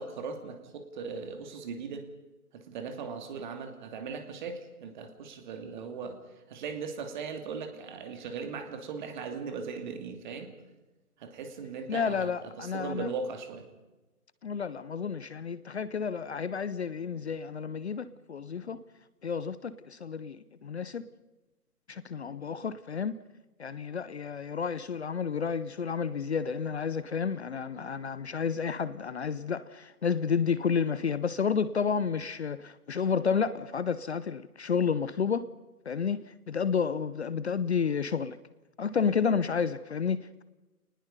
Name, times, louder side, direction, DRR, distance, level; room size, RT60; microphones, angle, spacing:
voice 1, 0.0-2.0 2.5-6.2 6.5-10.5 11.2-13.7, right 5 dB, 30° right, 2.7 m, -38 dB
voice 2, 11.9-13.1 14.4-18.8 19.2-21.1 21.9-23.2 23.6-35.5 35.9-38.4 38.8-40.4, left 6 dB, 45° left, 0.7 m, -31 dB
28.0 x 19.5 x 5.4 m
figure-of-eight pair, 140°, 46 cm